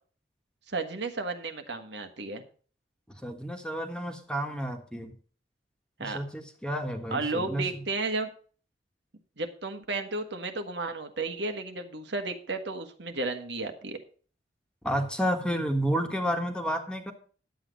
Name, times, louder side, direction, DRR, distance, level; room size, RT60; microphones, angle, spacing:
voice 1, 0.7-2.4 6.0-6.2 7.1-8.3 9.4-14.0, right 3 dB, 75° right, 6 dB, 1.5 m, -33 dB
voice 2, 3.2-5.1 6.0-7.6 14.8-17.1, equal, 5° left, 4 dB, 1.5 m, -30 dB
11.0 x 8.3 x 5.2 m, 0.41 s
head